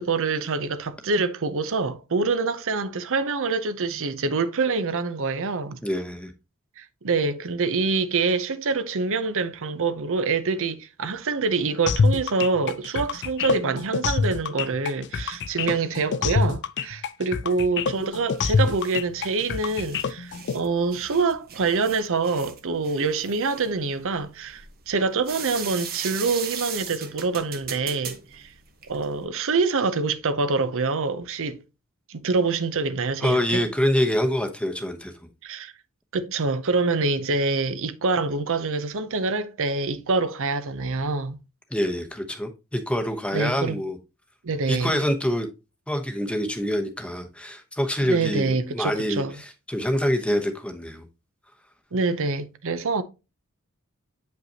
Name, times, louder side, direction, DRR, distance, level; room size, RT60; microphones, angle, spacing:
voice 1, 0.0-5.8 6.8-28.5 28.9-31.6 32.1-33.6 35.4-35.7 36.1-41.4 43.3-43.8 44.4-45.0 48.0-49.4 51.9-53.0, right 4 dB, 65° right, 0.7 m, -26 dB
voice 2, 5.8-6.3 33.2-35.1 41.7-44.0 44.7-45.5 45.9-51.1, equal, 5° left, 0.9 m, -26 dB
sound 1, 11.9-20.5, left 5 dB, 55° left, 0.4 m, -25 dB
sound 2, 17.9-29.2, right 7 dB, 45° right, 1.0 m, -39 dB
7.9 x 5.3 x 2.8 m
head